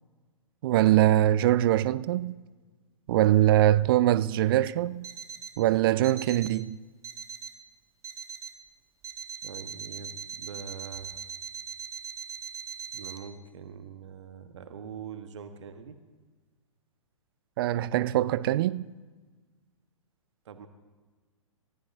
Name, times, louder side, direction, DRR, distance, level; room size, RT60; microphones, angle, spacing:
voice 1, 0.6-2.3 3.1-5.1 5.6-6.8 17.6-18.9, right 13 dB, 45° right, 0.4 m, -23 dB
Alarm, 5.0-5.6 6.0-6.6 7.0-7.6 8.0-8.6 9.0-13.2, right 6 dB, 20° right, 1.1 m, -41 dB
voice 2, 9.4-11.2 12.9-16.0 20.4-20.7, right 7 dB, 60° right, 1.3 m, -43 dB
28.0 x 14.5 x 2.7 m
figure-of-eight pair, 115°, 17 cm